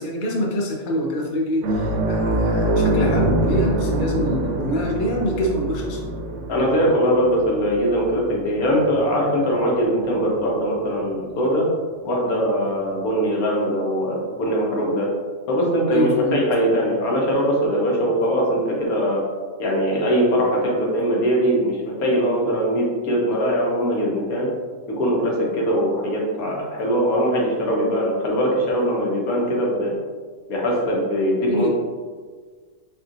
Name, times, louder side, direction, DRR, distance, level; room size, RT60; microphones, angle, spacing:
voice 1, 0.0-6.1 15.9-16.4 31.5-31.7, equal, 45° left, -1 dB, 0.7 m, -25 dB
sound 1, 1.6-10.6 10.9-11.1 13.1-13.2, right 1 dB, 80° right, 1.0 m, -25 dB
voice 2, 6.5-11.7 12.0-15.1 15.5-19.2 19.6-24.5 24.9-30.0 30.5-31.7, equal, 90° left, -2 dB, 1.4 m, -21 dB
4.4 x 3.6 x 2.5 m, 1.5 s
omnidirectional pair, 1.5 m